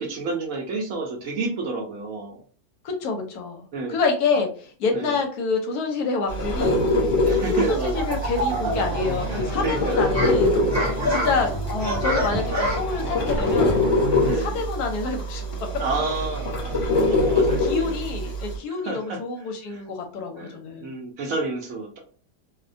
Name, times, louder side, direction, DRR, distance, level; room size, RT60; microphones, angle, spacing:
voice 1, 0.0-2.4 3.7-4.0 4.9-5.2 7.2-8.0 9.3-10.1 11.0-11.3 14.2-14.6 15.8-17.9 18.8-19.2 19.7-19.8 20.4-22.0, right 3 dB, 70° right, 0 dB, 0.9 m, -30 dB
voice 2, 2.8-3.6 3.9-6.8 7.5-10.6 11.1-13.8 14.2-15.4 17.0-17.1 17.6-20.9, left 4 dB, 75° left, 3 dB, 1.1 m, -27 dB
sound 1, 6.3-18.6, left 1 dB, 50° left, 1.1 m, -24 dB
sound 2, 7.7-14.3, equal, 50° right, 0.7 m, -32 dB
sound 3, 8.7-9.4 9.9-14.1, left 1 dB, 25° right, 0.3 m, -28 dB
2.7 x 2.1 x 2.5 m, 0.41 s
omnidirectional pair, 1.8 m